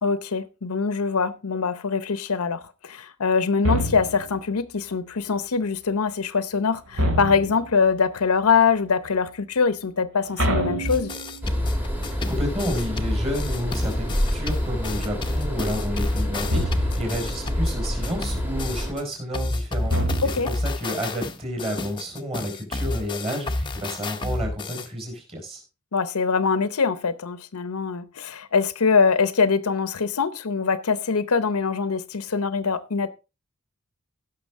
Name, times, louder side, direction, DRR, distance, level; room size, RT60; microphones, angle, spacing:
voice 1, 0.0-11.1 20.2-20.5 25.9-33.1, left 5 dB, 75° left, 0.7 m, -23 dB
sound 1, 3.6-4.4 6.9-7.8 10.4-11.5 16.5-17.2 19.9-20.7, equal, 70° right, 2.5 m, -26 dB
sound 2, 10.8-19.0 19.3-24.9, left 2 dB, 20° left, 0.7 m, -29 dB
sound 3, 11.4-18.9, equal, 10° right, 1.5 m, -29 dB
voice 2, 12.3-25.6, equal, 25° right, 4.4 m, -31 dB
16.5 x 6.0 x 3.5 m
head